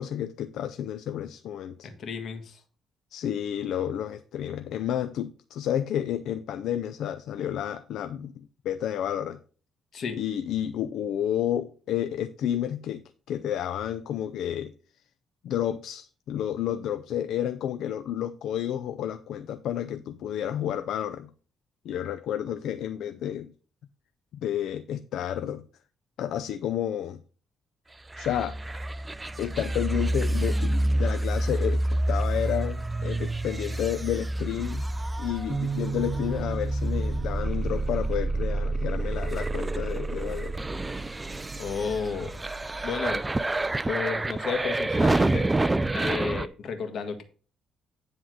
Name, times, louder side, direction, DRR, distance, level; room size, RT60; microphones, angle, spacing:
voice 1, 0.0-1.9 3.1-9.4 10.2-14.7 15.4-21.3 21.8-23.5 24.3-25.7 26.2-27.2 28.2-28.6 29.4-34.8 35.2-40.5, left 10 dB, 80° left, 0.5 m, -31 dB
voice 2, 1.8-2.6 9.9-10.2 41.6-42.4 42.8-43.2 43.9-45.5 45.9-47.2, left 5 dB, 60° left, 1.7 m, -32 dB
sound 1, 28.1-46.5, right 2 dB, 15° right, 0.4 m, -28 dB
Bass guitar, 35.5-41.7, right 5 dB, 60° right, 0.9 m, -37 dB
10.0 x 3.7 x 6.3 m
cardioid pair, 90°, 0 cm